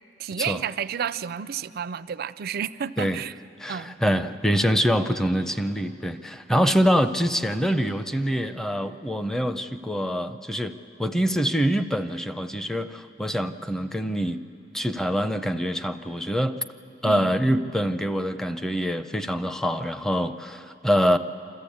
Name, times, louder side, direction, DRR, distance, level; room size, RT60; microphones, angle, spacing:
voice 1, 0.2-3.3 3.7-4.0 17.0-17.4, right 8 dB, 55° right, 13 dB, 0.4 m, -31 dB
voice 2, 3.6-14.4 14.7-16.6 17.0-21.2, equal, 5° left, 10 dB, 0.6 m, -25 dB
27.5 x 13.5 x 8.6 m, 2.8 s
head